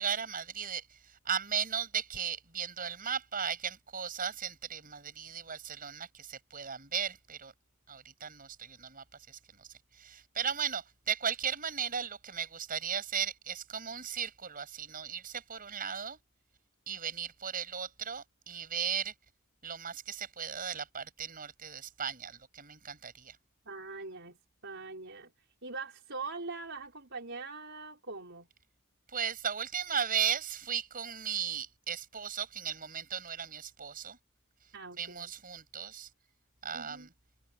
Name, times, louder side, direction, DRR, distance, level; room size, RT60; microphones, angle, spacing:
voice 1, 0.0-7.5 7.9-9.7 9.9-16.2 16.9-19.1 19.6-23.4 29.1-34.2 35.0-36.1 36.6-37.1, right 7 dB, 40° right, 7.5 m, -36 dB
voice 2, 23.6-25.3 25.6-28.5 34.7-35.3 36.7-37.1, right 3 dB, 55° right, 4.7 m, -42 dB
head